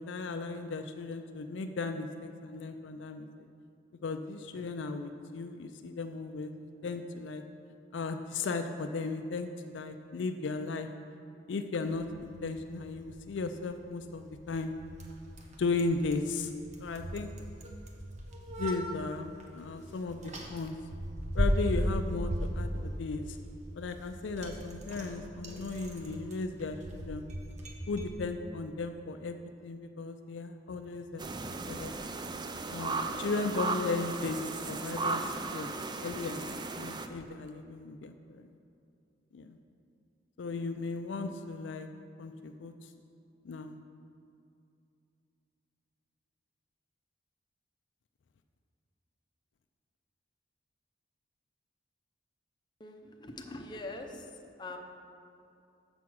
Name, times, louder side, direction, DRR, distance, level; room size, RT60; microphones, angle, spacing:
voice 1, 0.0-3.5 4.0-7.4 7.9-10.9 11.5-14.7 15.6-16.5 16.8-17.3 18.6-20.2 20.5-20.7 21.3-23.4 23.7-27.2 27.9-31.9 32.7-35.7 36.0-38.5 39.3-39.6 40.4-41.9 42.2-42.7 43.4-43.8, left 3 dB, 70° left, 7 dB, 0.4 m, -36 dB
Bicycle, 11.8-28.1, equal, 40° right, 0.9 m, -37 dB
sound 1, 31.2-37.1, right 3 dB, 25° right, 0.4 m, -36 dB
voice 2, 52.8-54.2 54.6-54.8, left 2 dB, 25° left, 2 dB, 0.6 m, -42 dB
7.0 x 5.9 x 6.3 m, 2.5 s
head